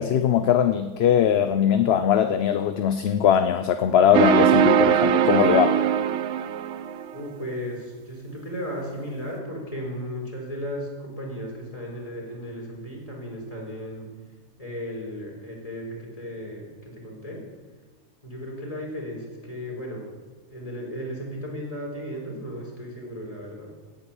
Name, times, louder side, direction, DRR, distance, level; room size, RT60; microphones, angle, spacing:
voice 1, 0.0-5.8, left 9 dB, 60° left, 10 dB, 0.8 m, -20 dB
sound 1, 4.1-7.1, right 8 dB, 70° right, 0.9 m, -20 dB
voice 2, 7.1-14.1 14.6-17.4 18.2-20.1 20.5-23.8, equal, 25° left, -1 dB, 4.1 m, -35 dB
17.0 x 8.9 x 7.2 m, 1.3 s
omnidirectional pair, 1.3 m